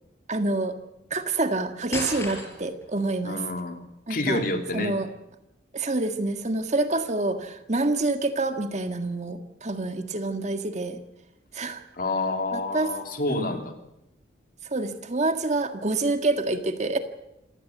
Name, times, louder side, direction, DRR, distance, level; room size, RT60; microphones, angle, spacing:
voice 1, 0.3-0.7 1.1-3.4 4.1-4.4 4.7-5.1 5.7-11.0 11.5-11.8 12.5-12.9 13.3-13.6 14.7-17.0, right 2 dB, 40° right, 7 dB, 1.7 m, -27 dB
sound 1, 1.9-2.9, left 2 dB, 15° left, 5.5 m, -33 dB
voice 2, 3.2-3.8 4.1-5.0 11.9-13.7, left 2 dB, 50° left, 5 dB, 2.9 m, -28 dB
27.0 x 16.0 x 8.4 m, 0.88 s
head